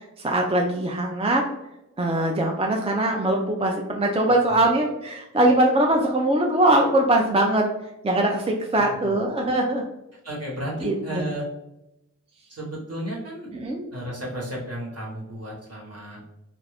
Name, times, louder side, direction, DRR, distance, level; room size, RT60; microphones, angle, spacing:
voice 1, 0.2-1.4 2.0-7.7 8.0-9.8 10.8-11.2 13.5-13.9, right 1 dB, 20° right, 0 dB, 0.4 m, -22 dB
voice 2, 8.8-9.1 10.2-11.4 12.5-13.5 13.9-16.2, equal, 50° right, -4 dB, 1.1 m, -33 dB
2.4 x 2.4 x 3.4 m, 0.91 s
wide cardioid pair, 60°, 31 cm